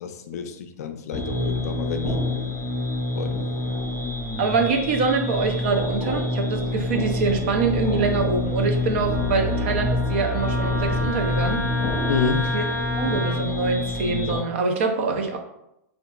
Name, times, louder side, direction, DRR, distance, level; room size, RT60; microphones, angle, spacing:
voice 1, 0.0-2.3 3.2-3.4 12.1-12.5, left 5 dB, 70° left, 7 dB, 0.4 m, -29 dB
sound 1, 1.1-14.4, left 1 dB, 10° left, 1.0 m, -26 dB
voice 2, 4.4-11.6 12.3-12.7 13.0-15.4, right 4 dB, 45° right, 4 dB, 0.4 m, -24 dB
Wind instrument woodwind instrument, 9.1-13.4, left 2 dB, 15° right, 0.8 m, -32 dB
3.7 x 2.4 x 2.3 m, 0.85 s
supercardioid pair, 175°, 9 cm